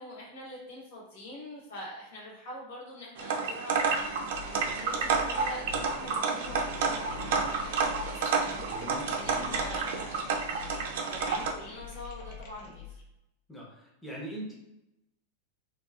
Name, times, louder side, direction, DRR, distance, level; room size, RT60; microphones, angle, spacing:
voice 1, 0.0-13.0, left 1 dB, 90° left, -3 dB, 1.2 m, -45 dB
sound 1, 3.2-11.5, right 5 dB, 65° right, 0.4 m, -30 dB
sound 2, 3.7-13.0, left 6 dB, 50° left, 0.6 m, -46 dB
voice 2, 8.4-9.6 13.5-14.5, equal, ahead, -5 dB, 0.6 m, -42 dB
2.9 x 2.3 x 2.3 m, 0.88 s
supercardioid pair, 165°, 0 cm